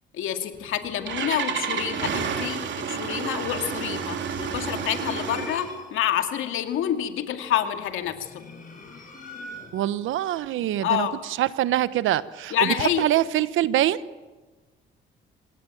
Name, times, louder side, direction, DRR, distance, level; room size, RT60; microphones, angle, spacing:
voice 1, 0.1-8.4 10.8-11.2 12.5-13.0, left 11 dB, 85° left, 7 dB, 2.4 m, -28 dB
Engine starting, 0.5-5.7, right 6 dB, 65° right, 3.4 m, -30 dB
sound 1, 4.5-6.1 7.9-10.0, left 2 dB, 40° left, 8.0 m, -42 dB
voice 2, 9.7-14.0, right 13 dB, 85° right, 16 dB, 1.1 m, -24 dB
27.5 x 18.5 x 9.2 m, 1.2 s
cardioid pair, 90°, 20 cm